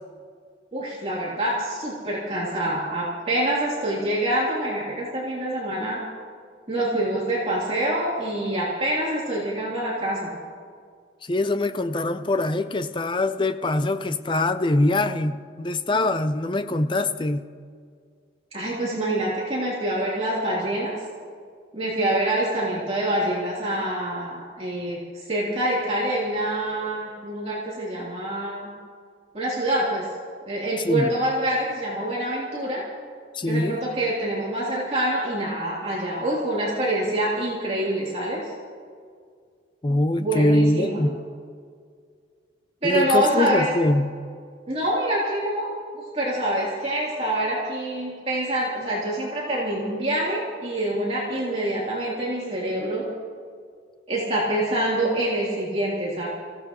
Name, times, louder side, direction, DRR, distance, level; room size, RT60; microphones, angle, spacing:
voice 1, 0.7-6.0 6.7-10.4 18.5-21.0 21.7-28.7 29.3-30.1 30.5-32.8 33.5-38.5 40.2-41.0 42.8-43.7 44.7-53.0 54.1-56.3, right 1 dB, 30° right, 3.1 m, -26 dB
voice 2, 11.3-17.4 30.8-31.1 33.3-33.8 39.8-41.2 42.8-44.1, left 2 dB, 25° left, 0.5 m, -23 dB
26.5 x 16.0 x 3.0 m
head